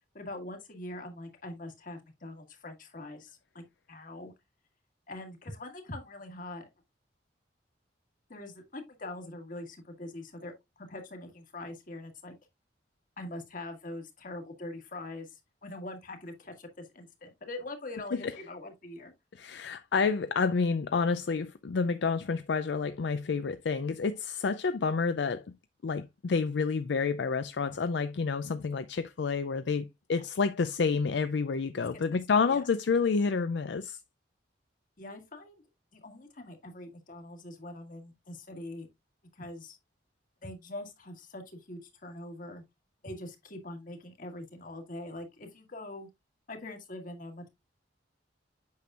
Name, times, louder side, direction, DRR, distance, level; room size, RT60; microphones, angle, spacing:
voice 1, 0.1-4.3 5.1-6.7 8.3-10.5 10.8-12.4 13.2-19.1 30.1-30.2 31.8-32.2 32.5-32.6 35.0-35.6 35.9-38.9 39.3-39.8 40.4-42.6 43.0-46.1 46.5-47.5, left 2 dB, 45° left, 1.8 m, -43 dB
voice 2, 19.3-25.4 25.8-34.0, left 5 dB, 65° left, 0.4 m, -29 dB
8.5 x 6.0 x 2.5 m
head